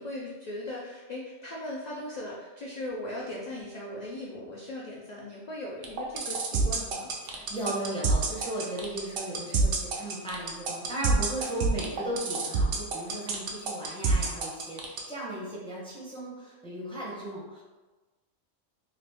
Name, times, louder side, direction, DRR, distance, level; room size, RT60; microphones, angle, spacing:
voice 1, 0.0-7.1, left 1 dB, 85° left, -3 dB, 0.3 m, -38 dB
sound 1, 5.8-15.0, right 3 dB, 60° right, 0.7 m, -27 dB
voice 2, 7.2-17.6, right 1 dB, 5° left, -6 dB, 0.6 m, -36 dB
2.9 x 2.5 x 3.4 m, 1.2 s
omnidirectional pair, 1.3 m